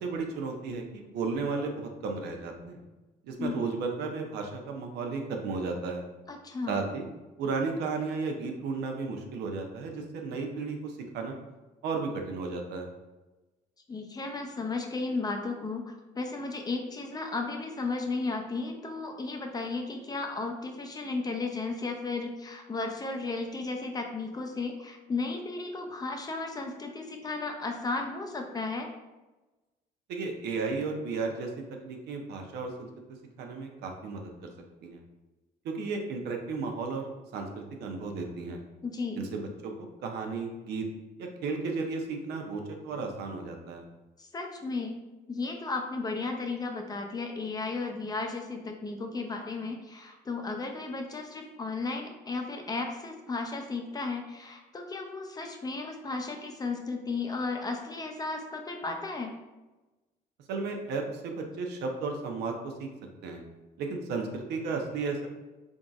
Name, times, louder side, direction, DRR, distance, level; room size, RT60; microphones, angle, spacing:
voice 1, 0.0-2.8 3.2-6.0 6.7-7.0 7.4-11.3 11.8-12.9 30.1-31.5 31.8-32.9 33.4-34.5 34.8-35.0 35.6-38.6 39.2-39.7 40.0-40.9 41.2-43.8 60.5-62.9 63.2-63.4 63.8-65.3, right 4 dB, 75° right, 3 dB, 0.7 m, -34 dB
voice 2, 6.3-6.7 13.9-28.9 38.8-39.2 44.2-45.0 45.3-59.4, left 3 dB, 25° left, 3 dB, 0.5 m, -34 dB
3.9 x 3.6 x 2.4 m, 1.1 s
cardioid pair, 110°, 17 cm